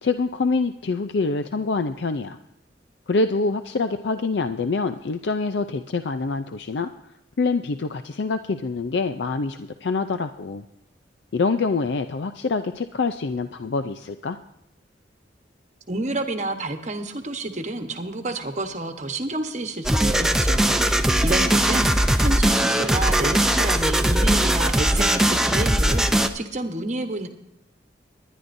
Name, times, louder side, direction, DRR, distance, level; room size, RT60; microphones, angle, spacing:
voice 1, 0.0-2.4 3.1-6.9 7.4-10.6 11.3-14.4, left 3 dB, 65° left, 9 dB, 0.5 m, -25 dB
voice 2, 15.9-27.3, right 2 dB, 40° right, 6 dB, 1.1 m, -30 dB
sound 1, 19.8-26.3, right 1 dB, 5° right, 0.5 m, -20 dB
20.0 x 11.0 x 2.6 m, 0.88 s
head